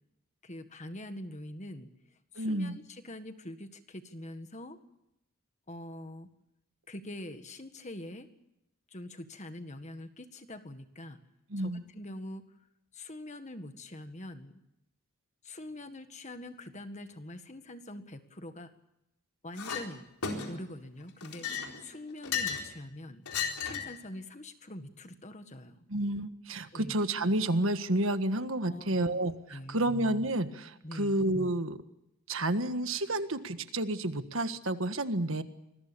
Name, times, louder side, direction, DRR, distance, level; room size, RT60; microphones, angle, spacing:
voice 1, 0.4-1.9 2.3-4.8 5.7-6.3 6.9-8.3 8.9-11.2 11.6-12.5 12.9-14.6 15.4-18.7 19.4-20.0 20.5-21.5 21.8-23.2 23.6-25.8 26.7-27.0 28.7-29.1 29.5-29.9 30.8-31.1, left 1 dB, 30° left, 8 dB, 1.8 m, -44 dB
voice 2, 2.4-2.8 11.5-11.8 25.9-31.8 32.3-35.4, right 1 dB, 60° right, 9 dB, 1.6 m, -30 dB
Chink clink, 19.6-19.9 20.2-20.7 21.2-22.7 23.3-24.0, left 7 dB, 90° left, 4.2 m, -34 dB
26.5 x 21.5 x 7.0 m, 0.85 s
head